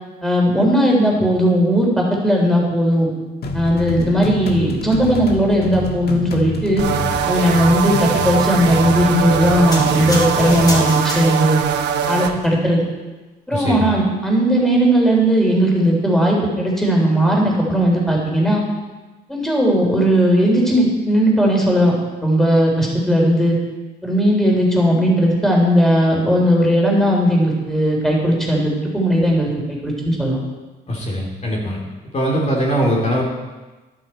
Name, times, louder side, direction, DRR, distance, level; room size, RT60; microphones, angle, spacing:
voice 1, 0.2-3.1 3.5-6.8 7.3-11.6 12.1-12.8 13.5-18.6 19.3-21.9 22.2-23.6 24.0-30.4, equal, ahead, -2 dB, 3.7 m, -17 dB
sound 1, 3.4-10.8, left 3 dB, 70° left, 1.5 m, -27 dB
sound 2, 6.8-12.3, right 8 dB, 85° right, 1.0 m, -21 dB
sound 3, 9.7-11.7 12.3-12.5, equal, 20° left, 4.0 m, -29 dB
voice 2, 13.5-13.9 30.9-31.8 32.1-33.2, equal, 40° left, -2 dB, 3.3 m, -21 dB
12.5 x 12.0 x 4.5 m, 1.2 s
cardioid pair, 95°, 17 cm